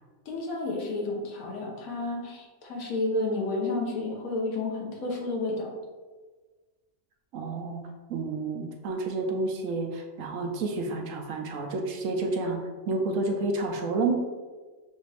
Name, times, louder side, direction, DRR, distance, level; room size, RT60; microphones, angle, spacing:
voice 1, 0.3-5.7, left 2 dB, 80° left, -1 dB, 1.3 m, -31 dB
voice 2, 7.3-14.1, right 3 dB, 70° right, 2 dB, 1.0 m, -30 dB
6.3 x 2.5 x 3.2 m, 1.3 s
omnidirectional pair, 1.4 m